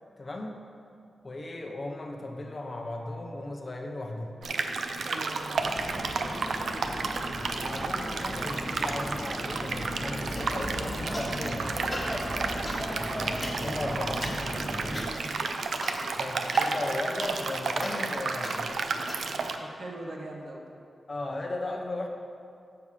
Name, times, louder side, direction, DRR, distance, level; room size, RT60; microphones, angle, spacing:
voice 1, 0.2-0.6 1.2-4.4 7.6-11.9 13.6-14.3 16.2-18.8 21.1-22.1, left 2 dB, 30° left, 2 dB, 0.7 m, -36 dB
sound 1, 4.4-19.6, right 4 dB, 85° right, 0.5 m, -32 dB
voice 2, 5.0-7.8 11.9-12.8 14.7-15.4 19.6-20.6, right 2 dB, 55° right, 0 dB, 1.1 m, -43 dB
sound 2, 5.5-15.1, equal, 20° right, 1.0 m, -36 dB
sound 3, 10.3-11.5 11.8-19.3, left 1 dB, 15° left, 1.4 m, -41 dB
7.1 x 6.9 x 4.8 m, 2.5 s
wide cardioid pair, 160°, 0 cm